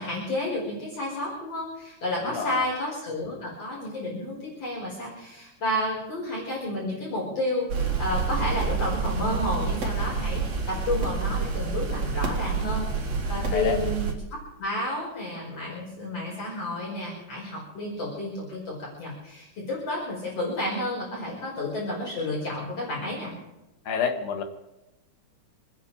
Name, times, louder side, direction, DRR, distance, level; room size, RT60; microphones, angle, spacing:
voice 1, 0.0-14.1 14.6-23.3, left 1 dB, 50° left, -5 dB, 6.2 m, -31 dB
voice 2, 2.2-2.6 13.5-13.8 23.9-24.4, left 6 dB, 90° left, 4 dB, 3.3 m, -28 dB
sound 1, 7.7-14.1, right 5 dB, 60° right, 3.4 m, -28 dB
26.5 x 10.0 x 4.9 m, 0.95 s
omnidirectional pair, 3.5 m